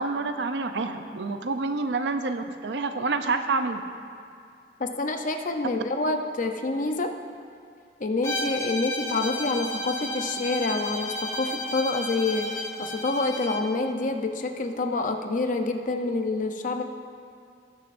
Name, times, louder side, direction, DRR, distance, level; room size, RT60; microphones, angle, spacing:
voice 1, 0.0-3.8, right 3 dB, 75° right, 8 dB, 0.6 m, -28 dB
voice 2, 4.8-7.2 8.0-16.8, left 3 dB, 50° left, 5 dB, 0.7 m, -27 dB
Bowed string instrument, 8.2-13.7, left 1 dB, 15° left, 0.8 m, -33 dB
19.0 x 6.6 x 2.6 m, 2.3 s
head